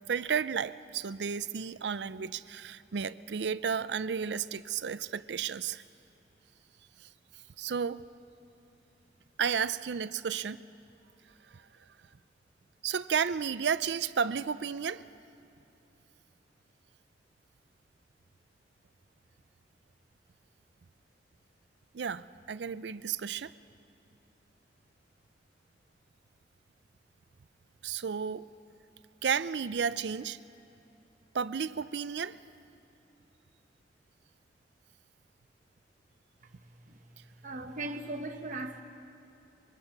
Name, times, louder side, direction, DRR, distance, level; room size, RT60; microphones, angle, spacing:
voice 1, 0.0-5.8 7.0-7.1 7.6-8.0 9.4-10.6 11.5-11.6 12.8-15.0 21.9-23.5 27.8-28.5 29.2-30.4 31.3-32.4, right 6 dB, 70° right, 0.5 m, -32 dB
voice 2, 37.4-38.8, right 2 dB, 45° right, 1.1 m, -38 dB
24.5 x 22.5 x 5.9 m
head